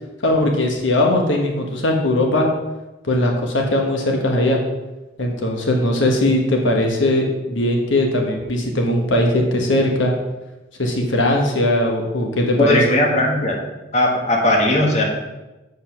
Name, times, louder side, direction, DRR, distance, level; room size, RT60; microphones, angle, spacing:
voice 1, 0.2-2.5 3.0-4.6 5.2-10.1 10.8-12.8, left 1 dB, 85° left, 1 dB, 1.3 m, -19 dB
voice 2, 12.6-13.6 13.9-15.0, left 1 dB, 35° left, 0 dB, 1.5 m, -17 dB
7.4 x 5.5 x 5.9 m, 1.1 s
head